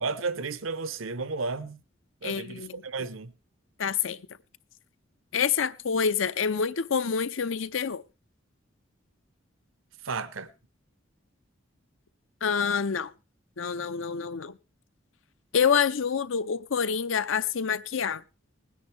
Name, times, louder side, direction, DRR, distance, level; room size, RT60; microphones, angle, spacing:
voice 1, 0.0-1.8 2.2-3.3 10.0-10.5, right 4 dB, 85° right, 0.9 m, -33 dB
voice 2, 2.2-2.8 3.8-4.2 5.3-8.0 12.4-13.1 13.6-14.6 15.5-18.2, left 6 dB, 80° left, 0.6 m, -27 dB
20.0 x 10.0 x 3.4 m
head